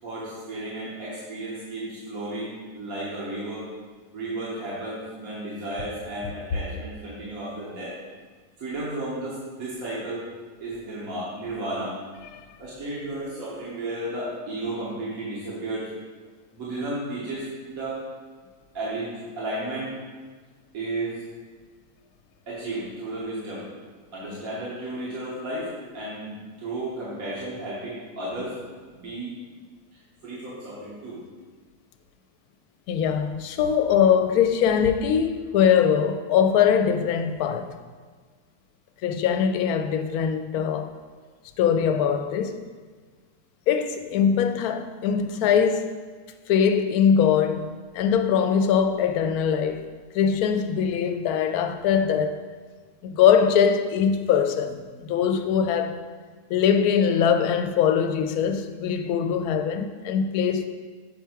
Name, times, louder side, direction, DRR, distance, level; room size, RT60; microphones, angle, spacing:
voice 1, 0.0-3.7 4.1-8.0 8.6-10.3 10.6-11.9 12.6-15.9 16.5-18.0 18.7-19.9 20.7-21.2 22.5-23.6 24.1-28.6 28.9-29.3 30.2-31.2, right 1 dB, 65° right, 1.8 m, -33 dB
voice 2, 32.9-37.8 39.0-40.9 41.6-42.6 43.7-46.0 46.5-49.9 50.1-52.4 53.0-56.0 56.5-60.7, left 7 dB, 80° left, 1.0 m, -22 dB
7.0 x 4.6 x 4.5 m
omnidirectional pair, 1.6 m